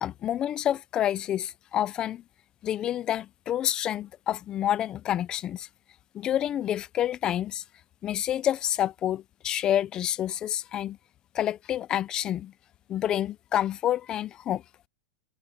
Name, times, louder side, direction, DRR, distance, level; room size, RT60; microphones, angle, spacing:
voice 1, 0.0-2.2 2.6-5.7 6.1-7.6 8.0-11.0 11.3-12.5 12.9-14.6, left 11 dB, 20° left, 0.5 m, -28 dB
supercardioid pair, 175°, 4 cm